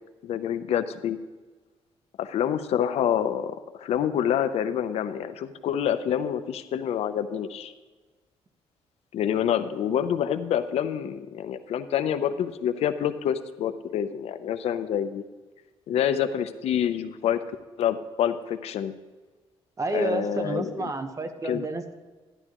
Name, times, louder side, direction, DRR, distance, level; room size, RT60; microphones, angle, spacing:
voice 1, 0.2-1.2 2.2-7.7 9.1-15.2 15.9-17.4 17.8-18.9 19.9-20.9 21.4-21.6, left 9 dB, 85° left, 11 dB, 0.6 m, -27 dB
voice 2, 19.8-22.0, right 2 dB, 30° right, 8 dB, 0.9 m, -30 dB
11.5 x 11.0 x 3.0 m, 1.3 s
cardioid pair, 115°, 10 cm